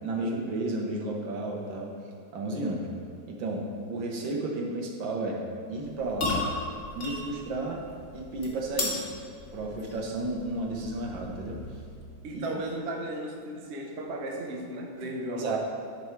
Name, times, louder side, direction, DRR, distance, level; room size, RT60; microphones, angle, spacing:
voice 1, 0.0-1.9 2.3-2.9 3.3-5.4 5.7-6.4 7.0-7.8 8.1-9.0 9.5-11.6 12.3-12.5 15.3-15.6, right 2 dB, 75° right, 0 dB, 1.8 m, -32 dB
sound 1, 5.8-12.2, left 2 dB, 40° left, 1.5 m, -36 dB
voice 2, 12.2-15.6, right 1 dB, 50° right, 1 dB, 0.8 m, -35 dB
10.0 x 4.6 x 4.6 m, 2.4 s
omnidirectional pair, 2.1 m